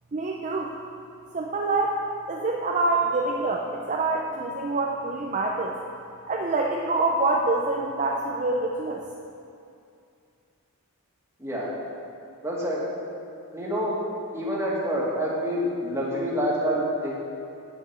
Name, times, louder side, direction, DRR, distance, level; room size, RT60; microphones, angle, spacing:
voice 1, 0.1-0.7 1.3-2.0 2.3-5.7 6.3-9.0, right 2 dB, 35° right, -1 dB, 0.6 m, -26 dB
voice 2, 12.4-12.8 13.5-14.0 14.3-17.1, equal, 10° right, -5 dB, 1.9 m, -27 dB
9.2 x 7.6 x 5.7 m, 2.5 s
head